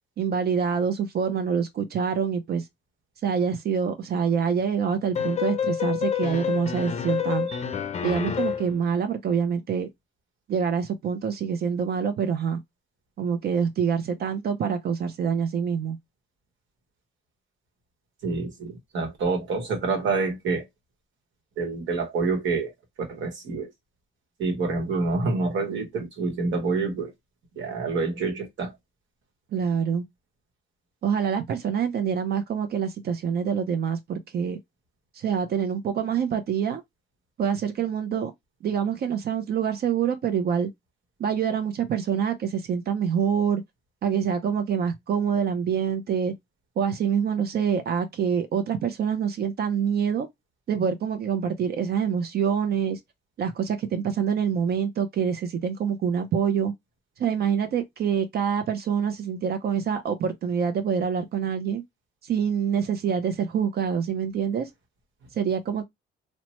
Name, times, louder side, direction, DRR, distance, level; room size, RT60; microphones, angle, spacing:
voice 1, 0.2-2.6 3.2-7.5 8.0-9.9 10.5-12.6 13.2-16.0 29.5-30.0 31.0-34.6 35.1-36.8 37.4-38.3 38.6-40.7 41.2-43.6 44.0-46.3 46.8-50.3 50.7-53.0 53.4-56.7 57.2-61.8 62.2-64.7 65.3-65.8, right 7 dB, 55° right, 0.5 m, -26 dB
sound 1, 5.1-8.8, left 8 dB, 35° left, 0.5 m, -28 dB
voice 2, 18.2-20.6 21.6-22.7 23.0-23.7 24.4-27.1 27.6-28.7, right 4 dB, 70° right, 1.0 m, -27 dB
2.9 x 2.1 x 2.9 m
cardioid pair, 90°, 20 cm